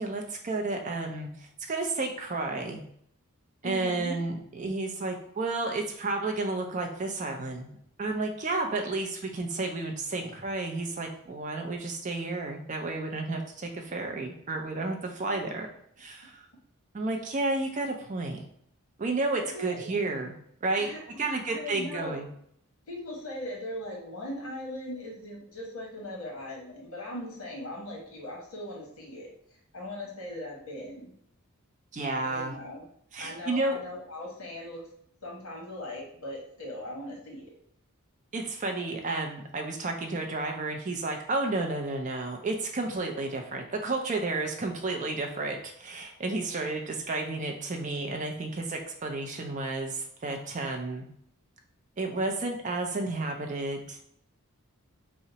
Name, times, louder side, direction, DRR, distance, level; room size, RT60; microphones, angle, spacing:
voice 1, 0.0-2.8 3.6-7.7 8.0-15.7 16.0-16.4 16.9-18.4 19.0-20.9 21.2-22.3 31.9-32.6 33.1-33.8 38.3-51.1 52.0-54.1, right 2 dB, 35° right, 3 dB, 0.4 m, -32 dB
voice 2, 3.6-4.1 19.5-19.9 20.8-22.2 22.9-29.3 29.7-31.1 32.2-32.8 33.2-34.8 35.2-37.5, left 1 dB, 65° left, -2 dB, 1.1 m, -39 dB
2.8 x 2.1 x 3.9 m, 0.70 s
head